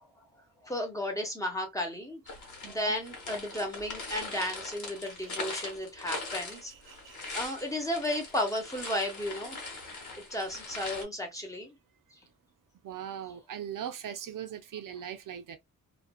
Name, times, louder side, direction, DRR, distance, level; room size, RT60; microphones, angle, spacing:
voice 1, 0.6-2.2 2.7-6.7 7.3-9.6 10.3-11.7, left 1 dB, 10° left, 0.8 m, -33 dB
sound 1, 2.3-11.0, left 3 dB, 60° left, 1.1 m, -41 dB
voice 2, 6.1-7.3 12.8-15.6, right 9 dB, 70° right, 0.5 m, -41 dB
2.5 x 2.2 x 2.3 m
wide cardioid pair, 150°, 34 cm